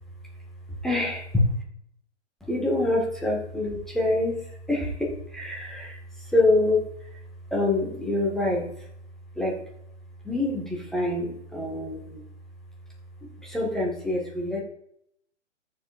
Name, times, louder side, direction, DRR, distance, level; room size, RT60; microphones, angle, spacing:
voice 1, 0.8-1.4 2.4-7.2 7.5-8.9 9.3-9.6 10.2-12.2 13.4-14.6, left 2 dB, ahead, -3 dB, 1.9 m, -26 dB
15.0 x 7.3 x 2.7 m, 0.72 s
figure-of-eight pair, 125°, 37 cm